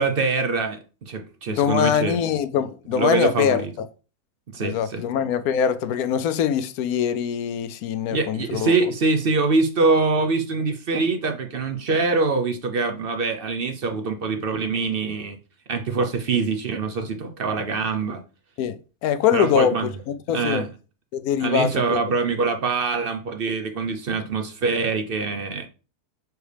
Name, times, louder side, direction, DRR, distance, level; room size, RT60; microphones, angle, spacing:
voice 1, 0.0-2.2 2.9-3.7 4.5-5.0 8.1-15.4 15.7-18.2 19.3-19.9 20.3-20.7 21.4-25.7, right 4 dB, 55° right, 0.6 m, -24 dB
voice 2, 1.5-3.9 4.6-8.7 18.6-19.8 20.3-20.7 21.1-22.0, left 8 dB, 75° left, 1.0 m, -23 dB
6.3 x 4.6 x 3.3 m
omnidirectional pair, 1.7 m